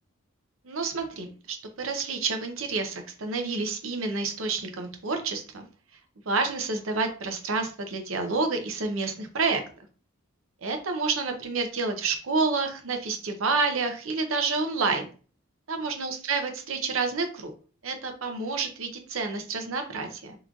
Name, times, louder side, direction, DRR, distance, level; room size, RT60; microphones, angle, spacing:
voice 1, 0.6-5.6 6.3-9.6 10.6-15.1 15.7-17.5 17.8-20.4, right 4 dB, 75° right, 5 dB, 0.7 m, -29 dB
3.7 x 3.0 x 2.4 m, 0.39 s
head